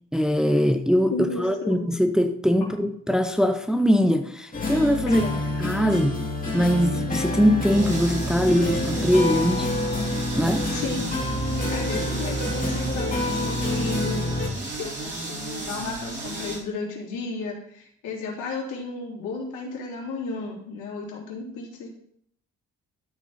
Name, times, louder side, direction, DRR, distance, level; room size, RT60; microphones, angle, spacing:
voice 1, 0.1-1.1 1.4-5.2 5.6-6.2 6.5-9.7 10.4-10.6, equal, ahead, 6 dB, 0.7 m, -21 dB
voice 2, 1.1-1.8 5.1-5.4 10.7-11.1 11.7-14.2 14.8-21.9, left 3 dB, 85° left, -3 dB, 3.2 m, -33 dB
sound 1, 4.5-14.5, left 1 dB, 30° left, 2.9 m, -27 dB
sound 2, 7.7-16.6, right 2 dB, 35° right, 3.2 m, -34 dB
12.5 x 4.6 x 4.2 m, 0.68 s
cardioid pair, 90°, 30 cm